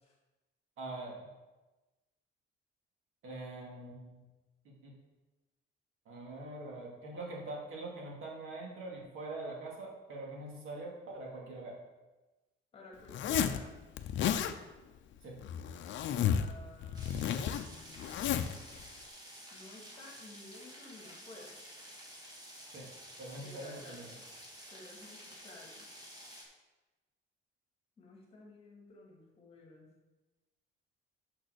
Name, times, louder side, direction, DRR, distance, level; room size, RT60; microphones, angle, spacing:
voice 1, 0.8-1.3 3.2-4.2 4.6-5.0 6.1-11.8 15.2-15.3 22.7-22.9 23.2-24.1, right 2 dB, 75° right, -2 dB, 2.4 m, -43 dB
voice 2, 12.7-13.7 16.1-18.2 19.5-21.6 23.4-24.2 24.7-25.8 28.0-29.9, left 2 dB, 30° left, -2 dB, 2.0 m, -54 dB
Zipper (clothing), 13.1-13.6 14.0-14.5 15.4-16.5 16.8-18.6, left 9 dB, 60° left, 0.6 m, -32 dB
sound 1, 16.9-26.4, equal, 20° right, 1.8 m, -51 dB
6.6 x 6.1 x 6.4 m, 1.1 s
cardioid pair, 170°, 21 cm